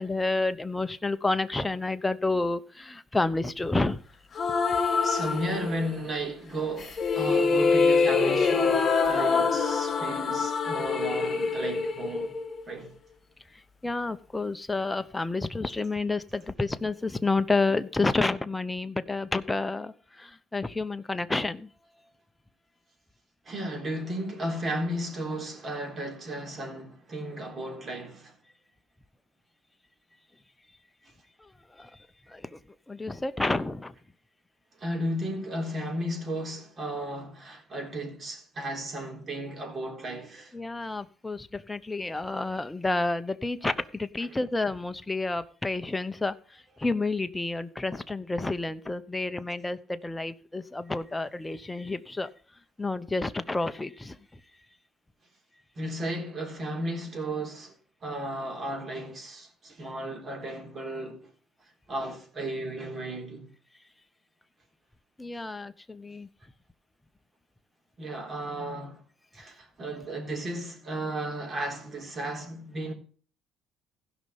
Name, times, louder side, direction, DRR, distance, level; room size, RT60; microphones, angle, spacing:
voice 1, 0.0-4.0 13.8-21.7 31.8-31.9 32.3-32.6 32.9-33.9 40.5-52.3 52.8-54.2 65.2-66.3, left 3 dB, 15° left, 0.8 m, -30 dB
sound 1, 4.3-6.1 6.8-12.9, left 5 dB, 35° left, 2.5 m, -25 dB
voice 2, 5.0-12.3 12.7-12.9 23.5-28.3 34.8-40.5 44.3-44.4 55.8-57.8 58.0-61.3 61.9-63.5 68.0-69.0 69.3-72.9, right 1 dB, 35° right, 3.9 m, -34 dB
16.0 x 5.5 x 5.5 m
cardioid pair, 95°, 0 cm